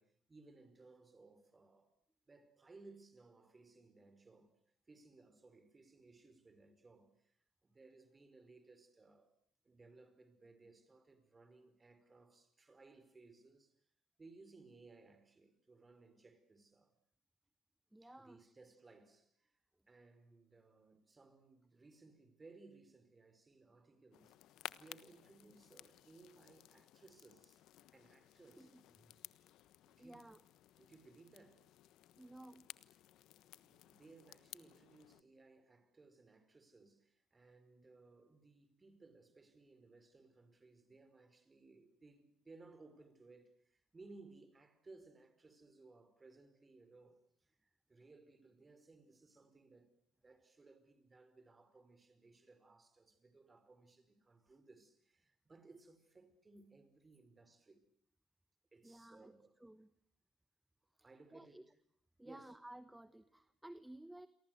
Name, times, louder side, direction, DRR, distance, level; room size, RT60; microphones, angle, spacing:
voice 1, 0.0-1.9 2.3-4.5 4.9-7.4 7.6-9.3 9.6-13.8 14.2-16.9 18.0-19.5 19.9-24.4 24.8-27.6 27.9-28.7 29.8-30.3 30.8-31.7 33.4-49.9 50.2-57.8 58.7-59.6 61.0-61.6 62.2-62.6, right 3 dB, 25° right, 5.0 m, -62 dB
voice 2, 17.9-18.5 28.6-29.1 30.0-30.4 32.1-32.7 58.8-59.3 59.6-59.9 61.0-61.6 62.2-64.3, right 1 dB, 5° right, 1.2 m, -55 dB
sound 1, 24.1-35.2, left 14 dB, 70° left, 1.2 m, -57 dB
29.5 x 23.5 x 7.9 m
supercardioid pair, 90°, 0 cm